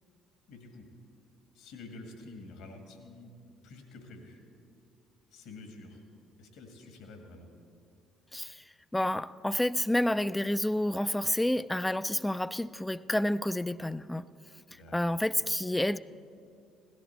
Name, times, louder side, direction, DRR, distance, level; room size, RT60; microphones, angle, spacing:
voice 1, 0.5-0.9 1.5-4.4 5.3-6.1 6.4-7.5 14.7-15.2, left 2 dB, 65° left, 1.6 m, -49 dB
voice 2, 8.3-8.6 8.9-14.3 14.7-16.0, left 1 dB, 10° left, 0.3 m, -29 dB
17.0 x 11.5 x 4.4 m
hypercardioid pair, 55°, 0 cm